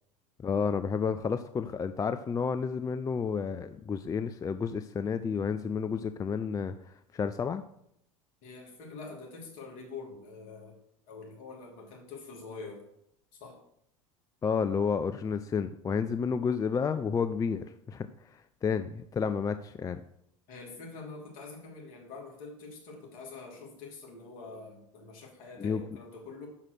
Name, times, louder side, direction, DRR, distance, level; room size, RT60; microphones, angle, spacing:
voice 1, 0.4-7.6 14.4-20.0 25.6-25.8, left 6 dB, 20° left, 11 dB, 0.4 m, -31 dB
voice 2, 8.4-10.8 11.1-12.8 13.4-13.6 20.5-26.5, left 4 dB, 55° left, -1 dB, 3.0 m, -45 dB
6.5 x 5.7 x 6.4 m, 0.75 s
hypercardioid pair, 75°, 17 cm